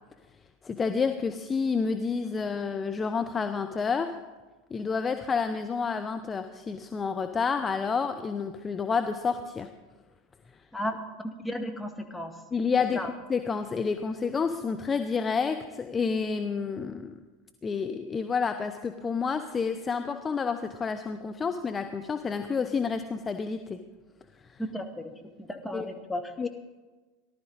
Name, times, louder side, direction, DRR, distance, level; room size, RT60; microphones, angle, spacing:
voice 1, 0.6-4.1 4.7-9.7 12.5-17.2 17.6-23.8 24.4-24.6 25.7-25.9 26.4-26.5, left 5 dB, 25° left, 7 dB, 0.8 m, -29 dB
voice 2, 11.2-12.3 12.9-13.1 24.7-25.1 25.4-26.5, left 1 dB, 5° left, 3 dB, 1.8 m, -34 dB
18.5 x 12.0 x 4.0 m, 1.2 s
figure-of-eight pair, 80°, 0 cm